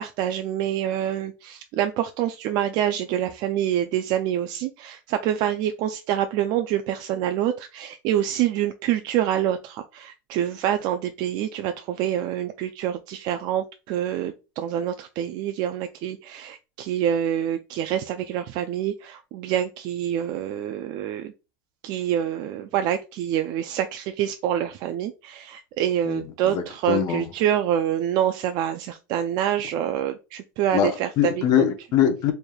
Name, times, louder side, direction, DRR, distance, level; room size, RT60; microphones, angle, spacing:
voice 1, 0.0-21.3 21.8-31.4, right 10 dB, 45° right, 0.4 m, -26 dB
voice 2, 26.1-27.3 30.7-32.3, left 9 dB, 40° left, 0.8 m, -23 dB
4.4 x 3.3 x 2.3 m
supercardioid pair, 155°, 10 cm